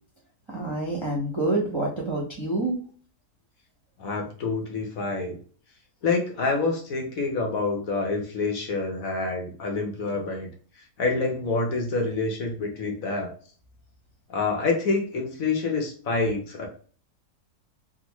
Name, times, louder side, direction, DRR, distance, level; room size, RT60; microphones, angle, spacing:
voice 1, 0.5-2.8, right 2 dB, 25° right, -4 dB, 0.7 m, -27 dB
voice 2, 4.0-5.4 6.0-10.5 11.0-13.3 14.3-16.7, left 3 dB, 65° left, 2 dB, 1.2 m, -27 dB
3.6 x 2.2 x 2.9 m, 0.42 s
omnidirectional pair, 1.6 m